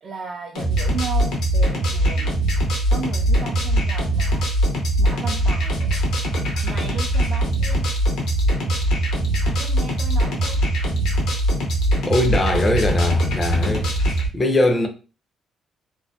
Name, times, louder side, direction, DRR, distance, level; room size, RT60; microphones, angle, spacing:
voice 1, 0.0-2.3 2.9-4.5 5.0-5.8 6.6-7.9 9.4-10.6, right 5 dB, 55° right, 0.4 m, -35 dB
sound 1, 0.5-14.3, right 1 dB, 85° left, 0.7 m, -21 dB
voice 2, 12.0-13.9 14.3-14.9, left 2 dB, 30° left, 0.5 m, -20 dB
2.6 x 2.0 x 2.3 m
cardioid pair, 90°, 0 cm